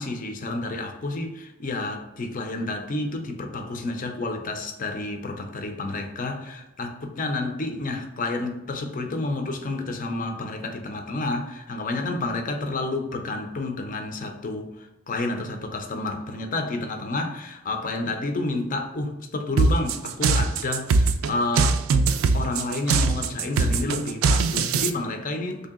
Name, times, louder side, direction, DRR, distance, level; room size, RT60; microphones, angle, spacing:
voice 1, 0.0-21.8 22.3-25.7, left 2 dB, 40° left, 5 dB, 0.5 m, -30 dB
sound 1, 19.6-24.9, right 4 dB, 85° right, 0.4 m, -21 dB
3.3 x 2.7 x 3.6 m, 0.98 s
head